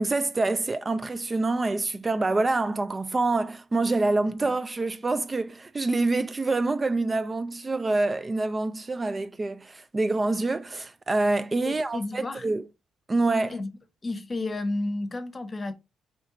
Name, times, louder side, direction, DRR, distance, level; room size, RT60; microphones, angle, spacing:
voice 1, 0.0-12.7 13.1-13.6, right 2 dB, 25° right, 0.3 m, -26 dB
voice 2, 4.2-4.5 11.6-12.5 13.5-13.7 14.0-15.7, left 2 dB, 30° left, 0.8 m, -32 dB
4.4 x 3.1 x 3.8 m
cardioid pair, 90°, 0 cm